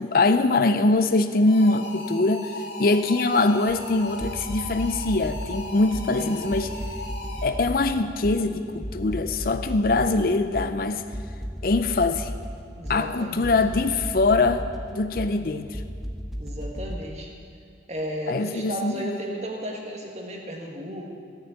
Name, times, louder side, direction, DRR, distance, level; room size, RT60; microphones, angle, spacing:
voice 1, 0.0-6.8 7.4-11.0 11.6-12.3 12.9-14.6 14.9-15.8 18.3-19.1, left 3 dB, 50° left, 9 dB, 0.5 m, -23 dB
sound 1, 1.5-7.7, left 1 dB, 70° left, 2.5 m, -38 dB
sound 2, 3.7-17.0, equal, ahead, 1.0 m, -35 dB
voice 2, 6.2-6.5 12.7-13.5 16.4-17.3 17.9-21.1, equal, 35° right, 0 dB, 1.7 m, -34 dB
15.0 x 6.7 x 9.0 m, 2.4 s
head